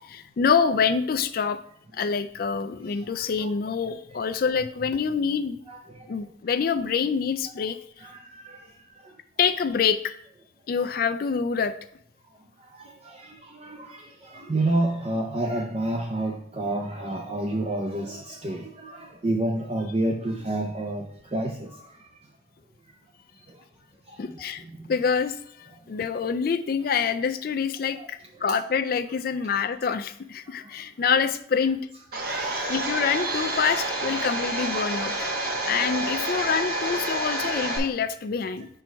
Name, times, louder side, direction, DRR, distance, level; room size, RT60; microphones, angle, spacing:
voice 1, 0.1-1.6 1.9-5.6 6.1-7.8 9.4-10.1 10.7-11.7 24.2-31.8 32.7-35.3 35.7-38.7, left 6 dB, 50° left, 11 dB, 0.4 m, -26 dB
voice 2, 5.7-6.3 8.0-9.2 12.6-22.1 23.4-23.6 24.1-24.9 28.0-28.1 30.4-30.8 32.2-32.7 33.7-33.8 34.2-34.3 35.4-35.7 36.3-36.4 37.1-37.2, right 1 dB, 30° right, 1 dB, 0.5 m, -30 dB
Domestic sounds home sounds, 32.1-37.8, right 2 dB, 50° right, 1.1 m, -29 dB
4.6 x 4.5 x 5.2 m, 0.67 s
head